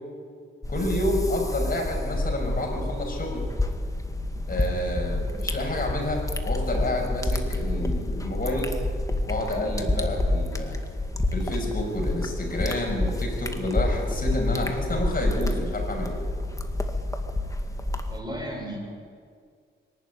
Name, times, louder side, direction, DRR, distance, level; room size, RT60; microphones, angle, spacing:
sound 1, 0.6-18.2, left 1 dB, 15° left, 1.9 m, -28 dB
voice 1, 0.7-3.4 4.5-8.7 9.2-10.8 11.3-16.2, left 1 dB, 45° left, 1 dB, 6.3 m, -29 dB
voice 2, 18.1-18.8, equal, 20° right, 0 dB, 6.9 m, -34 dB
23.0 x 12.0 x 9.5 m, 2.1 s
cardioid pair, 70°, 20 cm